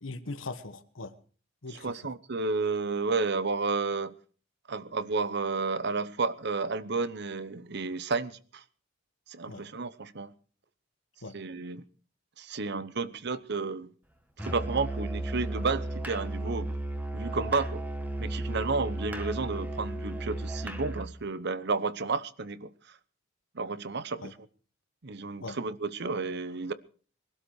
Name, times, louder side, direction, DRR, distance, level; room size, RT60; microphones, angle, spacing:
voice 1, 0.0-1.1 1.6-1.9 9.5-9.6 11.2-11.4 24.2-24.3 25.4-25.6, left 3 dB, 90° left, 1.4 m, -40 dB
voice 2, 1.8-4.1 4.7-8.6 9.3-10.3 11.3-11.8 12.4-13.9 14.5-16.7 17.1-17.8 18.2-22.7 23.5-24.3 25.0-26.7, right 4 dB, 60° right, 0.9 m, -31 dB
Musical instrument, 14.4-21.1, right 2 dB, 10° right, 1.5 m, -34 dB
22.5 x 12.5 x 4.8 m
head